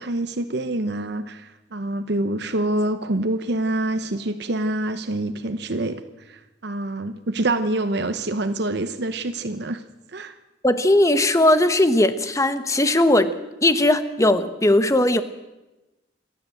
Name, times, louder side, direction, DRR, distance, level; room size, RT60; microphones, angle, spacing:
voice 1, 0.0-9.8 10.1-10.3, right 1 dB, 65° right, 9 dB, 0.9 m, -26 dB
voice 2, 10.6-13.3 13.6-15.2, left 1 dB, 15° left, 11 dB, 1.1 m, -18 dB
28.0 x 12.5 x 7.8 m, 1.1 s
head